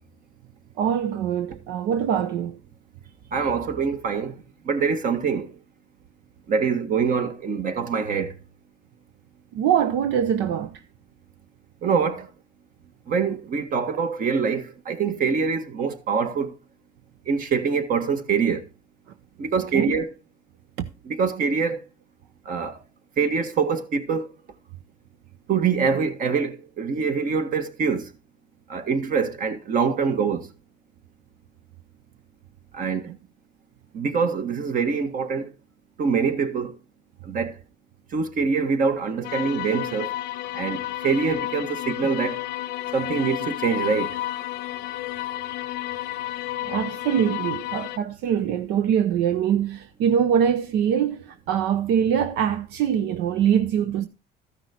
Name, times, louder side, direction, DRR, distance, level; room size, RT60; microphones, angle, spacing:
voice 1, 0.8-2.6 9.5-10.8 19.5-19.9 20.8-20.9 46.6-54.1, right 8 dB, 85° right, 0.7 m, -23 dB
voice 2, 3.3-5.6 6.5-8.3 11.8-12.3 13.1-16.5 17.3-18.7 19.4-20.1 21.0-21.8 22.4-22.8 23.2-24.3 25.5-28.1 28.7-30.5 32.7-33.2 33.9-35.5 36.0-36.7 37.2-37.5 38.1-40.1 40.5-42.4 42.9-44.1, right 5 dB, 55° right, 1.6 m, -24 dB
sound 1, 39.2-48.0, left 15 dB, 85° left, 0.7 m, -31 dB
13.5 x 6.0 x 4.4 m
cardioid pair, 110°, 17 cm